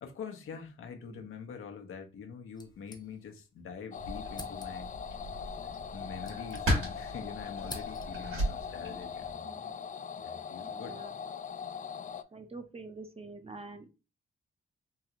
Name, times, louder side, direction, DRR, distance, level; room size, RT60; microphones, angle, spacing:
voice 1, 0.0-4.9 5.9-9.5 10.1-11.0, left 6 dB, 80° left, 0.8 m, -45 dB
sound 1, 2.5-3.5 3.8-3.9 4.3-5.0 5.8-7.1 7.4-8.4, left 2 dB, 20° left, 0.9 m, -49 dB
sound 2, 3.9-12.2, left 7 dB, 40° left, 0.4 m, -41 dB
sound 3, 4.0-9.3, equal, 80° right, 2.1 m, -36 dB
voice 2, 10.6-11.2 12.3-13.9, right 3 dB, 30° right, 0.7 m, -47 dB
3.8 x 2.4 x 3.0 m
cardioid pair, 65°, 21 cm